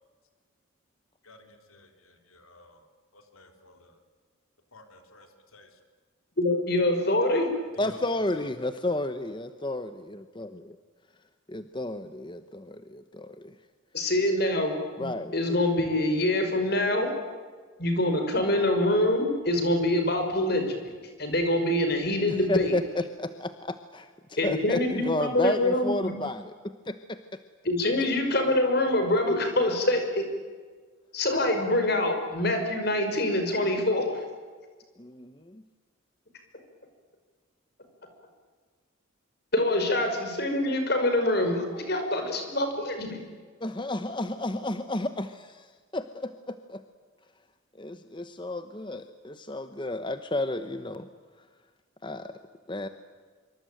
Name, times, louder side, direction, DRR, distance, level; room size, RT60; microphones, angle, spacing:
voice 1, 1.2-2.8 3.1-4.0 4.7-5.3 5.5-5.7 7.3-7.5 7.8-8.0 8.3-8.5, left 2 dB, 85° left, 6 dB, 3.6 m, -52 dB
voice 2, 6.4-7.6 13.9-14.7 15.0-17.1 17.8-20.9 21.2-22.7 24.4-26.1 27.6-30.2 31.1-34.2 39.5-43.2, left 1 dB, 50° left, 6 dB, 5.5 m, -25 dB
voice 3, 7.8-10.8 11.5-13.5 15.0-15.3 22.5-24.1 24.4-27.2 35.0-35.6 43.6-46.8 47.8-51.1 52.0-52.3 52.7-52.9, left 2 dB, 25° left, 10 dB, 0.9 m, -32 dB
25.5 x 24.5 x 9.2 m, 1.5 s
head